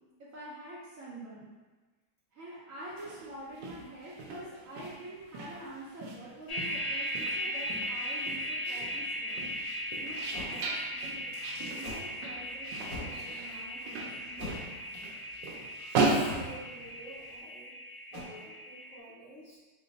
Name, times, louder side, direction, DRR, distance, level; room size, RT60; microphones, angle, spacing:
voice 1, 0.2-1.5 2.3-9.4 10.0-11.3 11.6-14.7, right 1 dB, 60° right, -7 dB, 0.9 m, -46 dB
sound 1, 2.9-17.3, right 3 dB, 85° right, 1.3 m, -37 dB
sound 2, 6.5-19.0, equal, 80° left, 1.8 m, -38 dB
sound 3, 10.3-10.5 11.8-12.1 12.8-13.2 14.3-14.7 16.2-16.6 18.1-18.2, left 1 dB, 30° right, 0.7 m, -41 dB
voice 2, 15.9-17.7 18.3-19.6, right 1 dB, 55° left, -8 dB, 0.9 m, -49 dB
3.8 x 2.2 x 3.9 m, 1.3 s
omnidirectional pair, 1.9 m